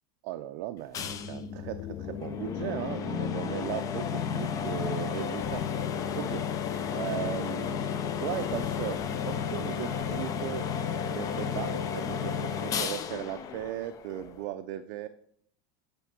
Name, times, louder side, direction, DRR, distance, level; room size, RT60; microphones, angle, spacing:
voice 1, 0.2-7.8 8.2-15.1, right 13 dB, 50° right, 9 dB, 0.5 m, -37 dB
sound 1, 0.9-14.4, left 7 dB, 20° left, 0.5 m, -32 dB
11.0 x 3.6 x 6.0 m, 0.68 s
supercardioid pair, 165°, 16 cm